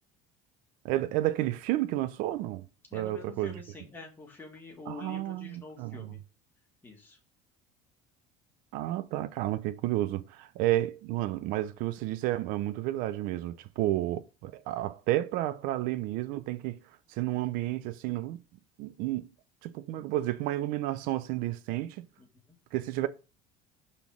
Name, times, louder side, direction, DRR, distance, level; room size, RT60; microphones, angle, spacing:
voice 1, 0.8-2.7 2.9-3.6 4.9-6.1 8.7-16.8 17.1-18.4 18.8-19.3 19.6-22.1 22.7-23.1, right 15 dB, 60° right, 0.6 m, -31 dB
voice 2, 2.9-6.2 6.8-7.2 22.2-22.6, left 3 dB, 15° left, 1.8 m, -47 dB
5.5 x 4.2 x 5.9 m
cardioid pair, 165°, 16 cm